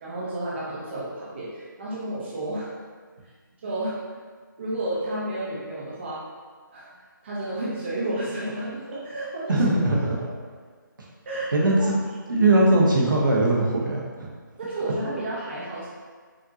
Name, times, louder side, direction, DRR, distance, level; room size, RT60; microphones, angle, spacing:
voice 1, 0.0-2.8 3.6-4.2 4.6-6.2 6.7-6.9 7.2-9.6 10.0-10.1 11.3-11.9 14.6-15.9, right 1 dB, 30° right, -7 dB, 0.8 m, -31 dB
voice 2, 9.5-10.2 11.5-11.9 12.3-14.3, right 2 dB, 70° right, -4 dB, 1.0 m, -20 dB
5.0 x 2.6 x 2.8 m, 1.6 s
figure-of-eight pair, 165°, 11 cm